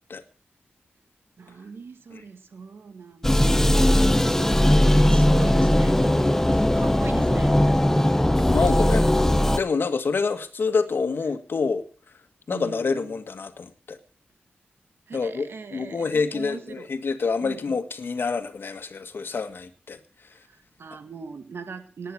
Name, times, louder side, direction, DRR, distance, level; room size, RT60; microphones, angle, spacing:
voice 1, 1.4-3.5 4.0-7.8 12.5-13.2 15.1-16.9 17.4-17.8 20.3-22.1, right 5 dB, 80° right, 9 dB, 1.9 m, -40 dB
sound 1, 3.2-9.6, left 1 dB, 10° left, 0.9 m, -19 dB
voice 2, 8.5-11.8 12.5-14.0 15.1-20.3, left 4 dB, 70° left, 9 dB, 1.8 m, -27 dB
19.0 x 10.0 x 6.2 m, 0.40 s
wide cardioid pair, 105°, 4 cm